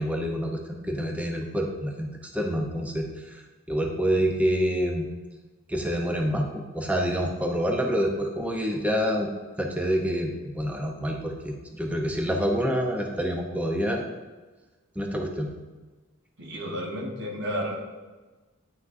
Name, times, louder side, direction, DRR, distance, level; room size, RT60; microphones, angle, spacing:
voice 1, 0.0-3.4 3.7-5.1 5.7-9.3 9.6-14.1 15.0-15.5, equal, 5° right, 1 dB, 0.6 m, -27 dB
voice 2, 16.4-17.8, equal, 50° right, 0 dB, 1.1 m, -32 dB
9.3 x 5.9 x 2.5 m, 1.3 s
head